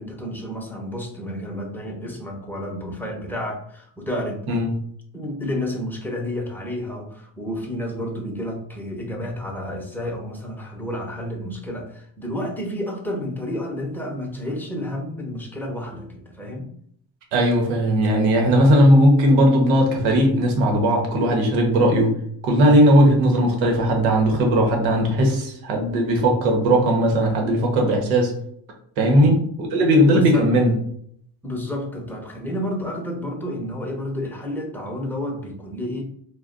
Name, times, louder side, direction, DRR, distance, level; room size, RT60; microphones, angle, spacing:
voice 1, 0.0-4.5 5.1-16.7 29.0-29.3 30.1-30.5 31.4-36.0, left 1 dB, 5° left, 1 dB, 0.8 m, -30 dB
voice 2, 17.3-22.1 22.4-28.3 29.0-30.7, equal, 85° right, 2 dB, 0.9 m, -17 dB
2.3 x 2.2 x 3.7 m, 0.66 s
supercardioid pair, 70°, 48 cm